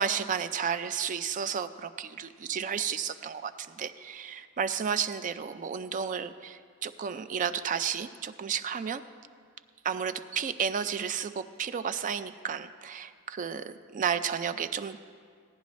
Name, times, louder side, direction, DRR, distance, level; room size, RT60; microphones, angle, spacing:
voice 1, 0.0-9.0 9.8-15.0, right 7 dB, 35° right, 12 dB, 0.3 m, -32 dB
16.5 x 10.5 x 3.1 m, 2.2 s
head